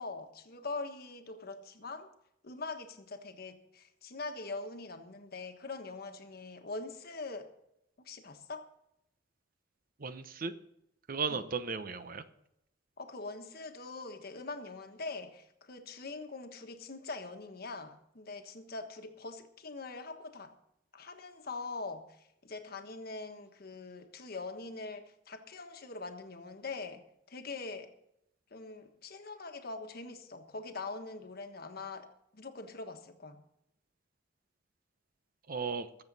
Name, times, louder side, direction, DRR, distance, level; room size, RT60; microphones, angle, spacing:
voice 1, 0.0-2.1 2.4-7.5 8.0-8.7 11.3-11.5 13.0-20.5 20.9-27.9 28.5-32.1 32.3-33.4, left 3 dB, 55° left, 6 dB, 1.3 m, -43 dB
voice 2, 10.0-10.5 11.1-12.2 35.5-35.9, right 5 dB, 50° right, 11 dB, 0.8 m, -35 dB
21.5 x 7.4 x 4.1 m, 0.81 s
head